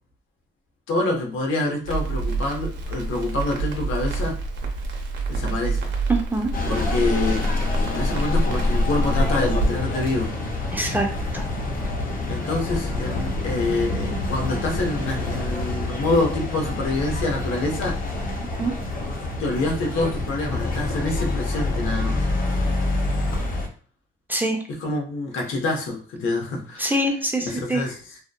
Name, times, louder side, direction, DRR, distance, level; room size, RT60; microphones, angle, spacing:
voice 1, 0.9-4.4 5.3-5.9 6.7-7.5 7.9-10.4 12.3-18.0 19.4-22.3 24.7-26.9 27.5-28.2, left 2 dB, 80° left, 1 dB, 0.7 m, -26 dB
Crackle, 1.8-9.7, right 1 dB, 65° right, 0.6 m, -25 dB
voice 2, 6.1-6.5 10.7-11.1 11.3-11.4 18.6-18.7 24.3-24.6 26.8-27.8, right 1 dB, 10° right, 2 dB, 0.4 m, -24 dB
sound 1, 6.5-23.7, left 2 dB, 45° left, 0.6 m, -27 dB
2.7 x 2.1 x 2.2 m, 0.42 s
cardioid pair, 90°, 20 cm